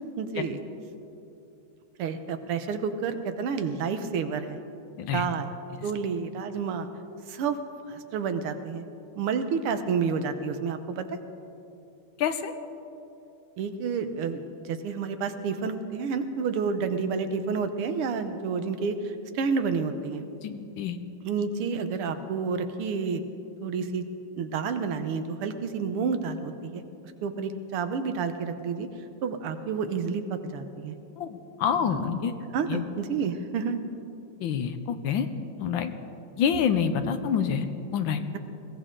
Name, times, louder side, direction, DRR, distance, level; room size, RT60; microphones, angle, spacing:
voice 1, 0.2-0.6 2.0-4.6 5.1-5.5 5.8-6.9 7.3-7.6 7.9-8.9 9.2-11.1 13.6-20.2 21.2-23.2 23.6-24.0 24.4-26.8 27.2-28.9 29.2-31.0 31.9-32.1 32.5-33.8, right 5 dB, 80° right, 8 dB, 1.8 m, -30 dB
voice 2, 12.2-12.5 20.4-21.0 31.2-32.3 32.7-32.8 34.4-35.3 35.6-35.9 36.4-37.7 37.9-38.2, left 7 dB, 70° left, 9 dB, 1.4 m, -27 dB
21.0 x 16.5 x 3.8 m, 2.8 s
omnidirectional pair, 2.4 m